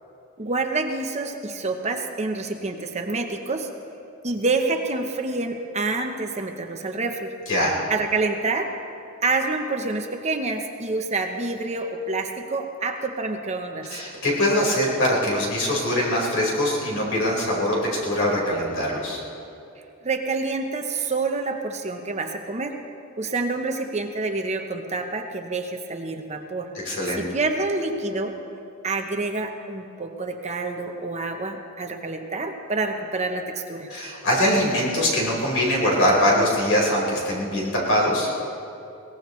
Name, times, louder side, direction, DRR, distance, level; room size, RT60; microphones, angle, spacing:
voice 1, 0.4-3.7 4.2-7.3 7.9-8.7 9.2-13.9 20.0-22.8 23.2-26.7 27.2-28.4 28.8-33.9, right 3 dB, 30° right, 4 dB, 0.9 m, -27 dB
voice 2, 13.9-19.2 26.8-27.2 33.9-38.3, equal, 65° left, -4 dB, 4.7 m, -22 dB
22.0 x 18.5 x 3.2 m, 2.7 s
head